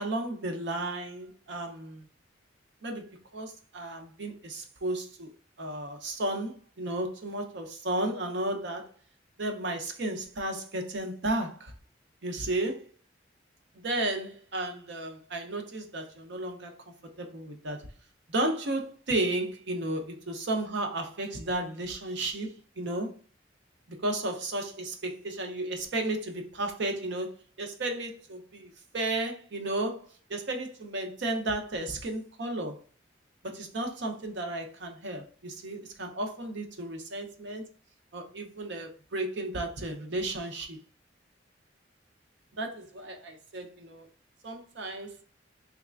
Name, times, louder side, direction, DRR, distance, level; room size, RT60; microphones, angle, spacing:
voice 1, 0.0-2.0 2.8-3.1 3.3-5.3 5.6-8.9 9.4-11.7 12.2-12.8 13.8-16.7 17.2-17.9 18.3-23.2 24.0-32.8 33.4-37.6 38.1-40.8 42.6-44.1 44.4-45.1, right 2 dB, 65° right, 0.7 m, -33 dB
3.5 x 3.2 x 2.4 m
head